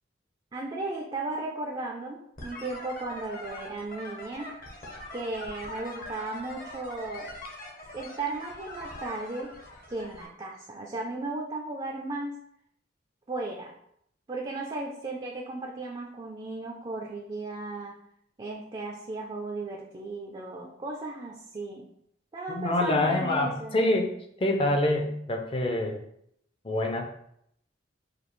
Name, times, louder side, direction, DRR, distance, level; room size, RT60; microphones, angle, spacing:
voice 1, 0.5-4.5 5.1-7.3 7.9-9.5 9.9-12.3 13.3-13.7 14.3-18.0 18.4-21.9 22.3-23.8, right 2 dB, 25° right, -1 dB, 0.4 m, -35 dB
sound 1, 2.4-10.3, left 1 dB, 50° left, 0.8 m, -43 dB
voice 2, 22.5-24.1 24.4-26.0 26.6-27.0, left 1 dB, 30° left, 3 dB, 0.5 m, -26 dB
4.9 x 2.4 x 3.1 m, 0.72 s
head